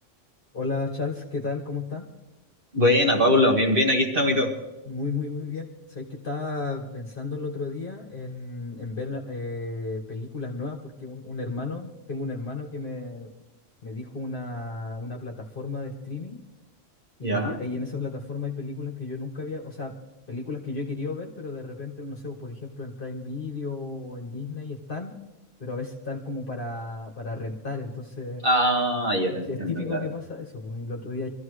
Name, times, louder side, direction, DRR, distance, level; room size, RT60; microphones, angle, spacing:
voice 1, 0.5-2.1 4.8-13.3 13.8-16.4 17.2-19.9 20.3-25.1 25.6-28.4 29.5-31.3, left 3 dB, 45° left, 0 dB, 1.5 m, -33 dB
voice 2, 2.7-4.5 17.2-17.6 28.4-30.0, left 1 dB, 45° right, 1 dB, 2.0 m, -22 dB
24.0 x 14.0 x 3.2 m, 1.0 s
omnidirectional pair, 1.3 m